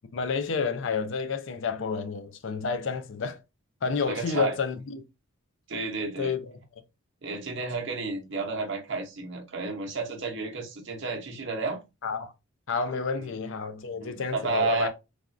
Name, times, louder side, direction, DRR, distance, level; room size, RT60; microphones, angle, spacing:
voice 1, 0.1-3.4 3.8-5.0 6.2-6.6 12.0-12.3 12.7-14.9, left 5 dB, 60° left, 0.4 m, -30 dB
voice 2, 4.1-4.5 5.7-6.3 7.2-11.8 13.2-13.3 14.0-14.9, right 4 dB, 60° right, 0.8 m, -31 dB
3.3 x 2.3 x 2.4 m
head